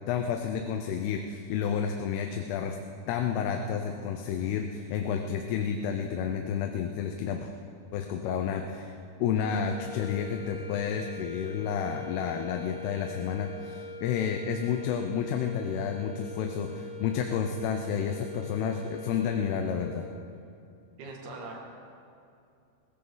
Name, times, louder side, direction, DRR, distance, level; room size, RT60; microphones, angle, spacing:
voice 1, 0.1-2.8 3.1-7.5 7.9-9.0 9.2-20.1, left 7 dB, 90° left, 4 dB, 2.9 m, -30 dB
sound 1, 9.4-20.3, left 1 dB, 60° left, 3.6 m, -42 dB
voice 2, 21.0-21.6, right 3 dB, 75° right, -1 dB, 4.1 m, -41 dB
22.5 x 15.5 x 4.0 m, 2.5 s
omnidirectional pair, 4.5 m